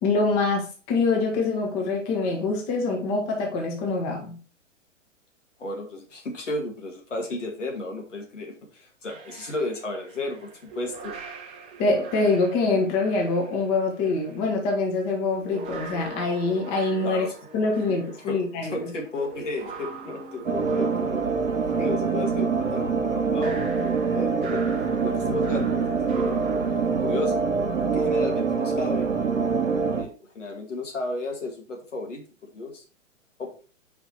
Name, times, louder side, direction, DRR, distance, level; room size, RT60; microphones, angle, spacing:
voice 1, 0.0-4.4 11.8-17.3 17.5-18.9, left 3 dB, 30° left, 1 dB, 1.8 m, -25 dB
voice 2, 5.6-11.1 17.0-17.3 18.3-18.4 18.6-21.3 21.8-24.6 25.0-26.4 26.8-27.4 27.9-29.1 30.0-32.8 33.4-33.5, left 2 dB, 70° left, 1 dB, 1.9 m, -33 dB
sound 1, 9.1-14.4 15.1-26.8, right 4 dB, 15° right, 0.8 m, -43 dB
sound 2, 20.5-30.0, right 5 dB, 80° right, 1.2 m, -25 dB
5.1 x 5.1 x 4.3 m, 0.38 s
figure-of-eight pair, 115°, 38 cm